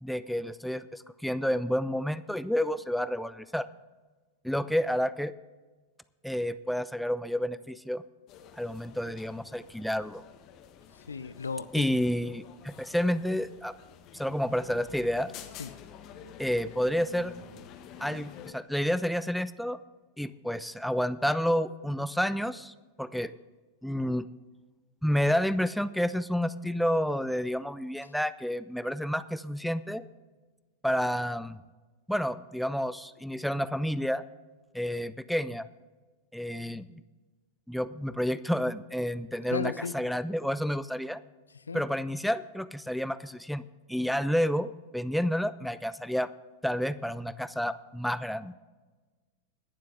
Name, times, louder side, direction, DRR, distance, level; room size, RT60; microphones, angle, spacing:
voice 1, 0.0-3.7 4.4-5.3 6.2-8.0 8.6-10.2 11.7-13.7 14.1-15.3 16.4-17.3 18.0-19.8 20.2-23.3 23.8-24.3 25.0-30.0 30.8-31.6 32.1-34.2 34.7-35.6 36.3-37.0 37.7-41.2 41.7-43.6 43.9-46.3 46.6-48.5, equal, ahead, 14 dB, 0.5 m, -30 dB
sound 1, 8.3-18.5, left 9 dB, 35° left, 1.3 m, -49 dB
voice 2, 10.9-11.9 15.6-15.7 39.5-39.9 41.5-41.8, left 5 dB, 75° left, 14 dB, 0.5 m, -35 dB
21.5 x 7.5 x 3.7 m, 1.3 s
figure-of-eight pair, 90°, 0 cm